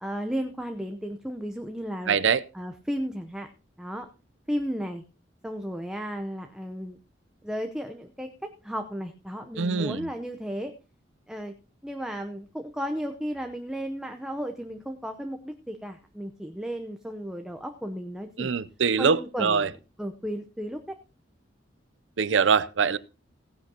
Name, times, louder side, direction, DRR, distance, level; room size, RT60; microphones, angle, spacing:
voice 1, 0.0-2.2 2.5-3.5 3.8-4.1 4.5-5.0 5.4-7.0 7.4-10.7 11.3-11.5 11.8-18.5 19.0-20.9, equal, 5° right, 0.8 m, -34 dB
voice 2, 2.1-2.4 9.6-10.1 18.4-19.7 22.2-23.0, right 6 dB, 75° right, 0.6 m, -23 dB
17.0 x 10.0 x 2.9 m
head